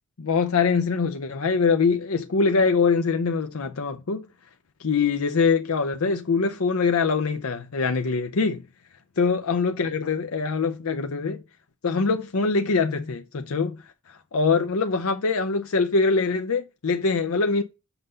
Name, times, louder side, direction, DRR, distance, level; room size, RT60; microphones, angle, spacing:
voice 1, 0.2-4.3 4.8-8.6 9.2-11.4 11.8-17.6, left 4 dB, 85° left, 0.6 m, -23 dB
5.8 x 5.6 x 6.6 m
head